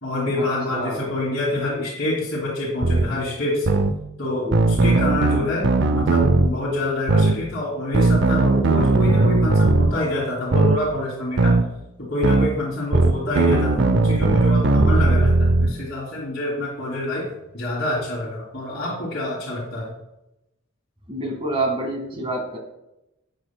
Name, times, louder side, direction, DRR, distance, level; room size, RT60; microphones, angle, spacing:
voice 1, 0.0-3.8 4.2-11.5 12.0-17.3 17.5-19.9, left 1 dB, 55° left, -8 dB, 2.8 m, -26 dB
voice 2, 0.7-1.1 4.4-4.9 21.1-22.6, right 2 dB, 25° right, 2 dB, 1.8 m, -28 dB
sound 1, 2.8-3.1 3.7-3.9 4.5-6.5 7.1-7.3 7.9-9.9 10.5-10.8 11.4-11.6 12.2-12.5 12.9-15.7, right 3 dB, 55° right, 0.5 m, -17 dB
12.0 x 8.6 x 2.2 m, 0.89 s
head